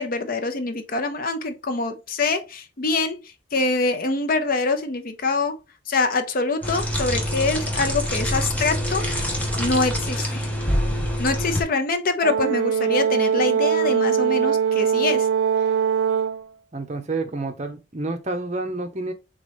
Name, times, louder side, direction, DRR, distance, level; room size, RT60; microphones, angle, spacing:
voice 1, 0.0-5.6 5.9-9.1 9.6-10.5 11.2-15.3, left 3 dB, 50° left, 0.6 m, -25 dB
sound 1, 6.6-11.6, equal, 10° left, 0.9 m, -25 dB
Brass instrument, 12.2-16.4, right 7 dB, 80° right, 0.3 m, -21 dB
voice 2, 16.7-19.1, right 2 dB, 40° right, 0.7 m, -29 dB
4.0 x 3.5 x 3.4 m
head